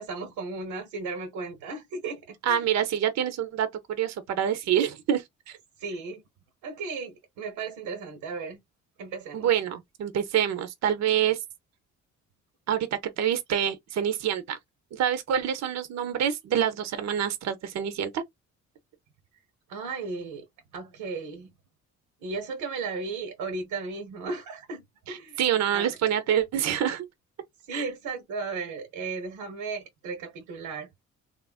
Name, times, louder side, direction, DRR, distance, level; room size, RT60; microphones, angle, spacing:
voice 1, 0.0-2.7 5.8-6.2 6.6-8.6 9.0-9.5 19.7-20.4 20.7-21.5 22.2-25.4 25.7-26.0 27.6-30.9, right 4 dB, 90° right, 0.9 m, -35 dB
voice 2, 2.4-5.6 9.3-11.4 12.7-12.9 13.2-14.6 14.9-18.2 25.1-27.1 27.7-27.8, right 9 dB, 60° right, 0.6 m, -26 dB
3.1 x 2.4 x 2.3 m
cardioid pair, 90°, 30 cm